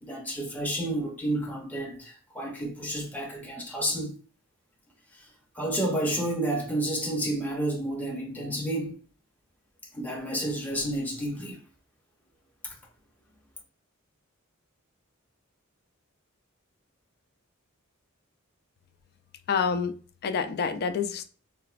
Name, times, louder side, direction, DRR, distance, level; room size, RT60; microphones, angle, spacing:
voice 1, 0.0-4.1 5.1-5.3 5.5-9.0 9.9-11.6 12.6-12.7, right 1 dB, 10° left, 0.6 m, -30 dB
voice 2, 19.5-19.9 20.2-21.2, left 6 dB, 50° left, 0.3 m, -27 dB
3.9 x 2.1 x 2.4 m
head